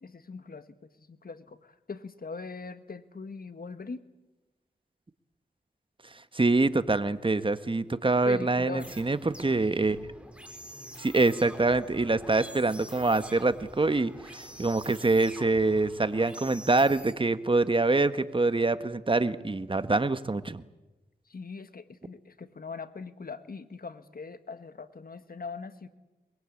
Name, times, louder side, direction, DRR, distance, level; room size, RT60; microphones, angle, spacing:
voice 1, 0.0-4.0 8.2-8.9 21.2-25.9, left 4 dB, 60° left, 11 dB, 1.6 m, -41 dB
voice 2, 6.3-10.0 11.0-20.6, right 3 dB, 30° right, 12 dB, 1.3 m, -25 dB
sound 1, 8.8-17.1, right 1 dB, 5° right, 4.0 m, -46 dB
23.0 x 22.0 x 8.6 m, 1.1 s
cardioid pair, 55°, 18 cm